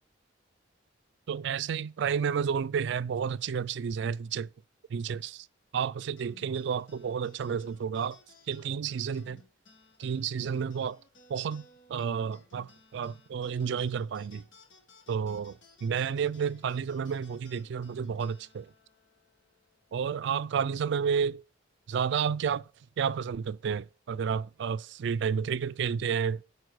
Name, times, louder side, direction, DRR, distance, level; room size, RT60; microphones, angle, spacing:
voice 1, 1.3-4.5 4.9-5.5 5.7-8.2 8.5-9.4 10.0-11.0 11.3-11.6 11.9-14.4 15.1-18.7 19.9-21.4 21.9-22.7 23.0-26.4, right 7 dB, 65° right, 0.3 m, -31 dB
sound 1, 6.2-20.9, left 2 dB, 75° left, 1.9 m, -59 dB
9.4 x 4.6 x 6.3 m
head